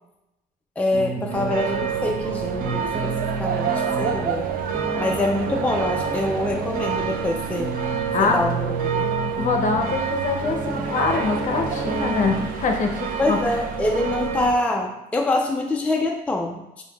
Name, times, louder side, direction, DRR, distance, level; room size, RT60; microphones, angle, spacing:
voice 1, 0.8-4.5 5.0-7.7 8.2-9.1 13.2-16.8, left 2 dB, 10° left, 1 dB, 0.4 m, -25 dB
sound 1, 0.9-12.5, right 3 dB, 30° right, 0.8 m, -31 dB
sound 2, 1.3-14.6, right 6 dB, 60° right, 0.5 m, -28 dB
voice 2, 8.1-8.5 9.4-13.4, left 4 dB, 50° left, 3 dB, 0.7 m, -24 dB
6.7 x 2.6 x 2.3 m, 0.94 s
cardioid pair, 110°, 17 cm